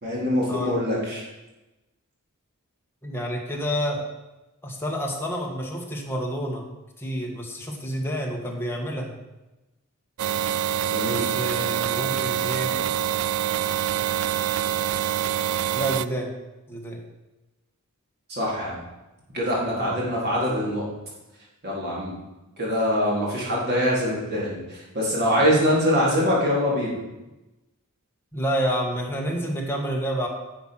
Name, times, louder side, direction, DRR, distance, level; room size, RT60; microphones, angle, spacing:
voice 1, 0.0-1.2 10.9-11.2 18.3-18.8 19.3-20.9 21.6-22.1 22.6-27.0, equal, 50° right, -5 dB, 4.1 m, -24 dB
voice 2, 3.0-4.1 4.6-6.6 7.0-9.1 11.1-12.7 15.7-16.3 16.7-17.0 19.8-20.0 28.3-30.3, equal, 10° left, -1 dB, 1.8 m, -29 dB
sound 1, 10.2-16.1, right 10 dB, 75° right, 0.4 m, -25 dB
10.5 x 7.1 x 6.0 m, 1.0 s
head